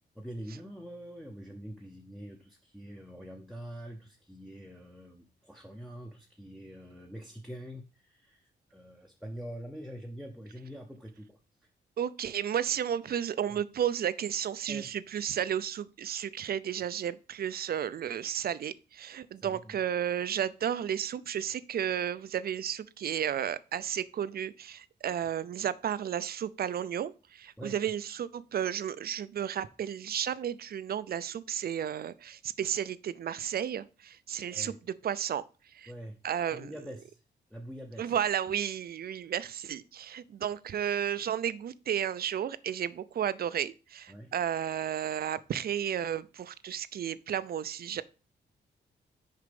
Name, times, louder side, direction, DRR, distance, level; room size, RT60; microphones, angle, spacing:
voice 1, 0.2-11.4 13.5-13.6 14.7-14.9 19.4-19.8 27.6-27.8 34.5-34.8 35.9-36.2 36.5-37.2 37.5-38.1 44.1-44.3, equal, ahead, 0.7 m, -45 dB
voice 2, 12.0-34.7 35.0-35.4 35.7-35.9 36.2-36.7 38.0-48.0, right 9 dB, 55° right, 0.5 m, -33 dB
6.6 x 5.0 x 5.1 m
wide cardioid pair, 145°, 19 cm